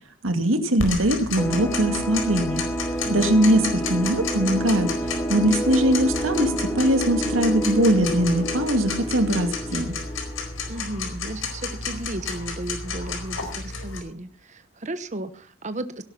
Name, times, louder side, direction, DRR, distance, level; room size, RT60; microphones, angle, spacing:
voice 1, 0.2-2.6 3.1-4.9 5.3-9.9, right 1 dB, 90° right, 7 dB, 2.4 m, -21 dB
Tick-tock, 0.8-14.0, left 4 dB, 85° left, 4.5 m, -32 dB
sound 1, 1.4-10.7, equal, 10° left, 2.8 m, -29 dB
voice 2, 3.0-3.5 10.7-16.0, right 1 dB, 35° right, 11 dB, 1.1 m, -34 dB
17.5 x 11.5 x 5.8 m, 0.43 s
head